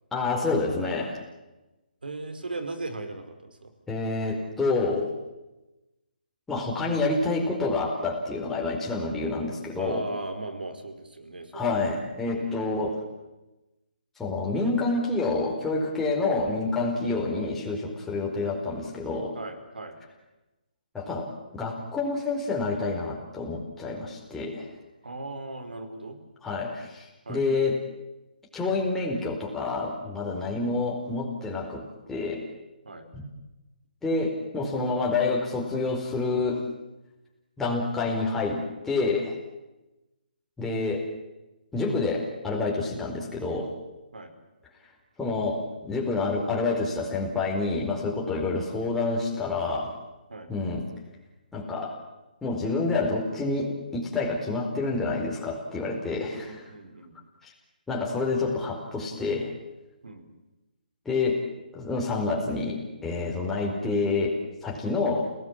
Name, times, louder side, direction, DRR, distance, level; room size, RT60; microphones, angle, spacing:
voice 1, 0.1-1.2 3.9-5.1 6.5-10.0 11.5-13.0 14.2-19.4 20.9-24.7 26.4-27.8 28.5-32.4 33.1-33.2 34.0-36.6 37.6-39.4 40.6-41.0 41.7-43.7 45.2-49.9 50.5-50.8 51.5-51.9 52.4-56.5 57.4-57.5 57.9-59.5 61.0-61.4 61.7-65.3, left 3 dB, 5° left, -2 dB, 4.5 m, -28 dB
voice 2, 2.0-3.7 9.8-11.7 12.3-12.9 16.2-16.4 16.9-17.2 18.1-18.4 19.3-20.0 25.0-26.2 27.2-27.4 30.4-30.6 32.8-33.1 44.1-44.3 50.3-50.5 56.2-57.2 60.0-60.3, right 2 dB, 85° right, 9 dB, 4.7 m, -38 dB
30.0 x 18.0 x 9.0 m, 1.0 s
hypercardioid pair, 155°, 5 cm